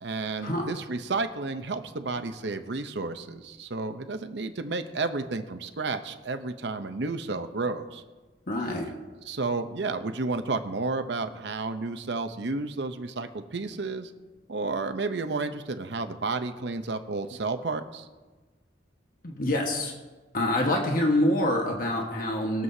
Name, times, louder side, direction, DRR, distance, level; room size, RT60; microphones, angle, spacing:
voice 1, 0.0-8.0 8.8-8.9 9.3-14.1 14.5-18.1, right 3 dB, 70° right, 8 dB, 0.8 m, -31 dB
voice 2, 8.5-8.9 19.2-19.9 20.3-22.6, left 1 dB, 50° left, 1 dB, 1.4 m, -26 dB
22.0 x 7.7 x 2.8 m, 1.3 s
head